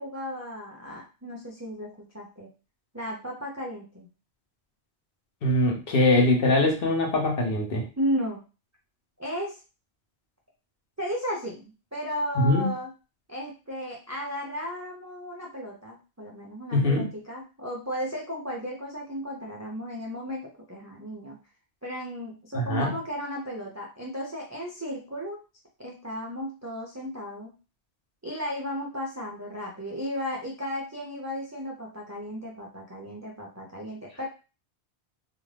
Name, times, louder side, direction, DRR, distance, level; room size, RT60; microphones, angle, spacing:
voice 1, 0.0-2.5 2.9-4.1 8.0-8.4 9.2-9.6 11.0-12.9 13.3-21.4 21.8-25.4 25.8-27.5 28.2-34.3, equal, 25° right, -2 dB, 0.3 m, -34 dB
voice 2, 5.4-7.9 12.4-12.7 16.7-17.1 22.5-22.9, left 1 dB, 60° left, 0 dB, 0.9 m, -22 dB
2.5 x 2.4 x 3.2 m, 0.32 s
omnidirectional pair, 1.1 m